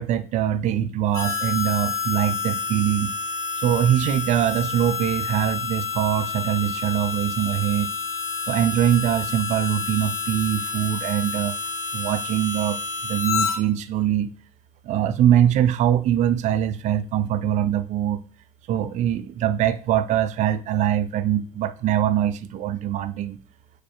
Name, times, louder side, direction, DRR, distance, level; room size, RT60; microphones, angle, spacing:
voice 1, 0.0-3.1 3.6-7.9 8.5-11.6 11.9-14.3 14.8-18.2 18.7-23.4, right 10 dB, 35° right, 0.4 m, -23 dB
Harmonica, 1.1-13.6, left 5 dB, 65° left, 1.6 m, -29 dB
4.8 x 4.1 x 2.4 m
figure-of-eight pair, 65°, 20 cm